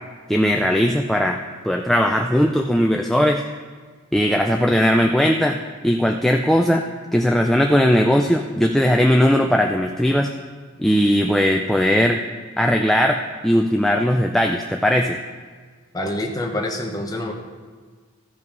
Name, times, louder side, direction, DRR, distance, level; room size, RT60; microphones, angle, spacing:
voice 1, 0.3-1.4 1.6-3.4 4.1-5.6 5.8-6.9 7.1-10.3 10.8-12.2 12.6-13.2 13.4-15.2, equal, ahead, 2 dB, 0.3 m, -18 dB
voice 2, 15.9-17.3, left 1 dB, 20° left, 1 dB, 1.0 m, -26 dB
14.0 x 5.5 x 5.3 m, 1.5 s
head